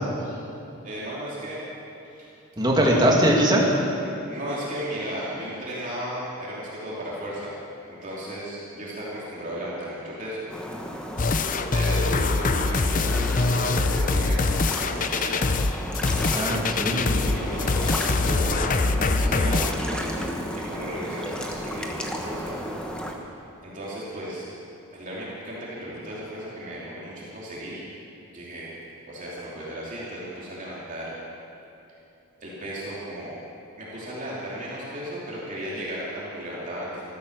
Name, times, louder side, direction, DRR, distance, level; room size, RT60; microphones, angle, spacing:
voice 1, 0.8-1.6 2.0-2.3 2.8-3.1 4.0-7.6 7.9-10.5 11.7-14.5 14.8-15.3 15.9-16.6 17.2-20.3 20.7-22.6 23.6-24.4 24.9-27.8 28.3-28.8 29.0-31.2 32.4-33.4 33.8-37.1, equal, 35° right, -7 dB, 2.9 m, -35 dB
voice 2, 2.6-3.6 16.2-17.4, right 1 dB, 20° right, -2 dB, 2.1 m, -21 dB
sound 1, 10.5-23.1, equal, 5° left, 1.1 m, -33 dB
sound 2, 11.2-19.7, left 3 dB, 35° left, 0.5 m, -24 dB
14.5 x 13.5 x 6.6 m, 2.8 s
head